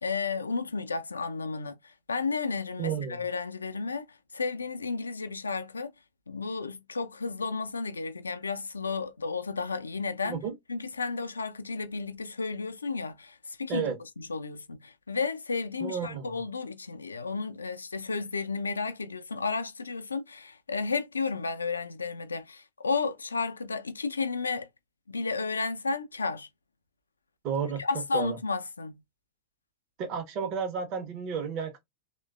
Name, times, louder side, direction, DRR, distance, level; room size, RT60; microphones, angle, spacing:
voice 1, 0.0-5.9 6.3-10.4 10.7-24.7 25.1-26.5 27.8-29.0, left 4 dB, 75° left, 0.4 m, -33 dB
voice 2, 2.8-3.2 10.2-10.5 13.7-14.0 15.8-16.4 27.4-27.8 28.1-28.4 30.0-31.8, right 7 dB, 40° right, 0.6 m, -32 dB
3.1 x 2.1 x 2.3 m
figure-of-eight pair, 90°, 0 cm